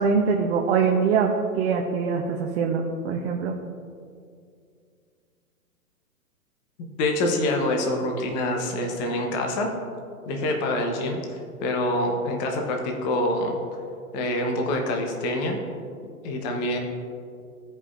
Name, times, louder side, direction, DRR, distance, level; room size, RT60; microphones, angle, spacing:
voice 1, 0.0-3.5, right 5 dB, 45° right, 1 dB, 0.7 m, -23 dB
voice 2, 7.0-9.7 10.3-13.6 14.1-15.6 16.2-16.8, left 1 dB, 30° left, 2 dB, 0.9 m, -26 dB
15.5 x 5.3 x 2.5 m, 2.3 s
hypercardioid pair, 140°, 45 cm